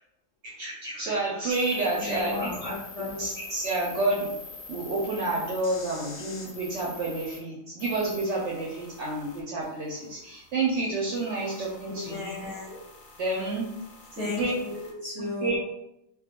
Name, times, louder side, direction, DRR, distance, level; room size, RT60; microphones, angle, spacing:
voice 1, 0.4-2.7 3.2-4.3 4.7-12.4 13.2-13.7 14.2-14.5 15.2-15.6, right 2 dB, 65° right, -4 dB, 0.7 m, -29 dB
sound 1, 1.5-7.4 7.8-14.9, left 3 dB, 80° left, 0.4 m, -46 dB
voice 2, 2.0-3.2 11.9-12.8 14.1-15.6, left 3 dB, 35° left, -7 dB, 0.6 m, -34 dB
2.2 x 2.2 x 2.8 m, 0.84 s
omnidirectional pair, 1.5 m